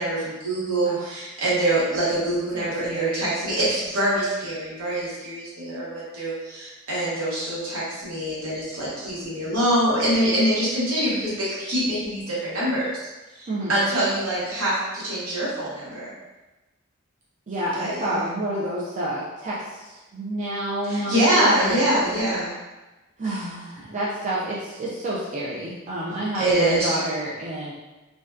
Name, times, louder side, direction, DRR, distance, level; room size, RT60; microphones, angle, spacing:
voice 1, 0.0-13.1 13.3-16.1 17.7-18.2 20.8-22.5 26.3-27.0, right 1 dB, 85° right, -8 dB, 1.0 m, -24 dB
voice 2, 0.8-1.1 2.5-3.3 13.5-13.7 17.5-21.8 23.2-27.7, right 1 dB, 35° right, -6 dB, 0.4 m, -29 dB
2.6 x 2.1 x 2.3 m, 1.1 s
head